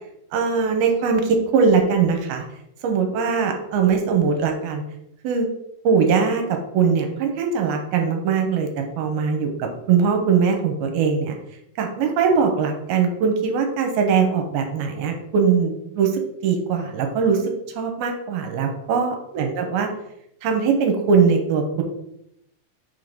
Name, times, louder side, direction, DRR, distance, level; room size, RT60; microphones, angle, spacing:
voice 1, 0.3-2.4 2.8-4.8 5.2-5.5 5.8-6.4 6.7-11.3 11.8-19.9 20.4-21.8, right 5 dB, 75° right, 4 dB, 2.6 m, -21 dB
6.1 x 3.7 x 5.1 m, 0.78 s
omnidirectional pair, 4.6 m